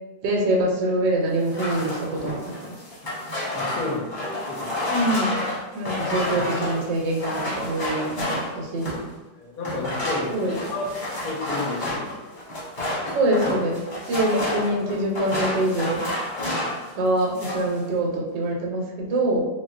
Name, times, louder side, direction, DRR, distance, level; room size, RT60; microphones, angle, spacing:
voice 1, 0.2-2.4 4.9-5.4 5.7-9.0 10.3-10.6 13.1-13.8 14.1-16.1 17.0-19.5, right 1 dB, 80° right, -2 dB, 1.2 m, -24 dB
sound 1, 1.4-9.1 9.6-16.9 17.2-17.7, left 1 dB, 35° left, 0.9 m, -30 dB
voice 2, 3.5-4.1 4.5-5.0 9.4-10.4 10.6-10.9 11.2-12.2, left 2 dB, 65° left, -1 dB, 0.9 m, -31 dB
3.6 x 2.2 x 2.4 m, 1.1 s
omnidirectional pair, 1.9 m